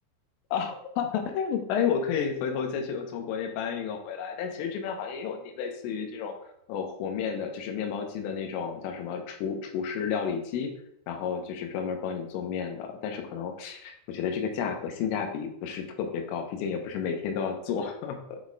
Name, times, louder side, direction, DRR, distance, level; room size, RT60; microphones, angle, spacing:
voice 1, 0.5-6.4 6.7-10.7 11.1-18.4, left 7 dB, 85° left, 4 dB, 3.5 m, -31 dB
8.5 x 4.2 x 4.7 m, 0.72 s
omnidirectional pair, 5.8 m